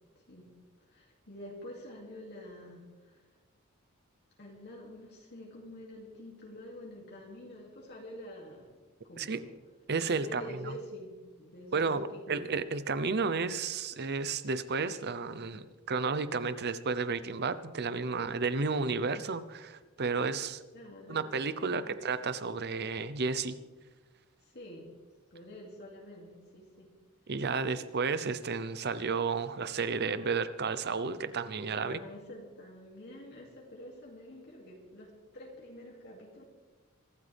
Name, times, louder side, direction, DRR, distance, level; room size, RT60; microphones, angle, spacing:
voice 1, 0.9-3.3 4.4-9.5 9.9-12.6 20.7-21.2 21.7-22.0 24.4-24.9 25.3-26.9 31.6-36.4, left 1 dB, 50° left, -3 dB, 2.6 m, -47 dB
voice 2, 9.9-10.7 11.7-20.6 21.1-23.6 27.3-32.0, right 4 dB, 50° right, 13 dB, 0.8 m, -32 dB
24.0 x 12.5 x 3.5 m, 1.3 s
head